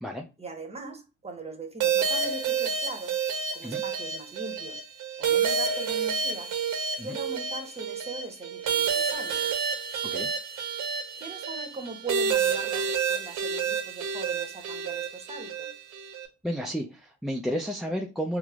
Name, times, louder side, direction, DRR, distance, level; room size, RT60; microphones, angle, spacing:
voice 1, 0.4-3.2 3.5-4.8 5.2-6.5 6.9-9.6 11.2-15.7, right 3 dB, 20° right, 0.9 m, -40 dB
sound 1, 1.8-16.3, right 6 dB, 85° right, 0.7 m, -29 dB
voice 2, 16.4-18.4, equal, ahead, 0.3 m, -32 dB
4.6 x 2.0 x 2.3 m
cardioid pair, 90°, 30 cm